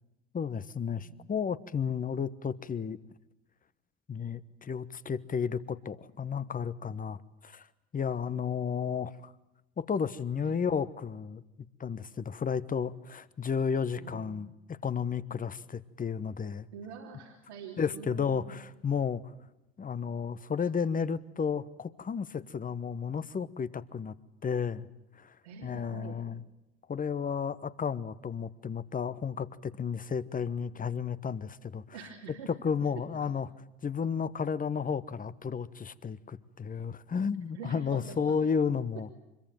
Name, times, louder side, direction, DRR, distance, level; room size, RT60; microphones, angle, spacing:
voice 1, 0.3-3.0 4.1-7.7 7.9-9.3 9.8-11.4 11.8-16.7 17.8-19.2 19.8-24.2 24.4-24.9 25.2-25.3 25.6-26.4 26.9-31.8 32.6-33.5 33.8-39.1, left 6 dB, 25° left, 17 dB, 1.1 m, -32 dB
voice 2, 1.0-1.3 10.4-10.6 14.0-14.4 16.7-18.5 25.4-26.2 31.9-32.5 33.1-33.3 37.5-38.3, right 5 dB, 85° right, -1 dB, 3.3 m, -45 dB
25.0 x 22.5 x 9.2 m, 0.91 s
hypercardioid pair, 75°, 33 cm